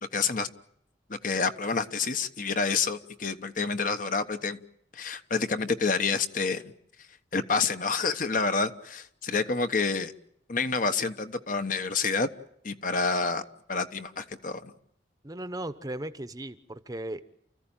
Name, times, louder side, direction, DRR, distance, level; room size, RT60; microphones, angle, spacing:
voice 1, 0.1-0.5 1.1-4.6 4.9-6.7 7.3-10.1 10.5-12.3 12.6-13.4 13.7-14.7, left 4 dB, 50° left, 9 dB, 1.1 m, -28 dB
voice 2, 15.2-17.2, right 1 dB, 20° right, 12 dB, 0.9 m, -36 dB
29.5 x 15.0 x 9.0 m, 0.71 s
head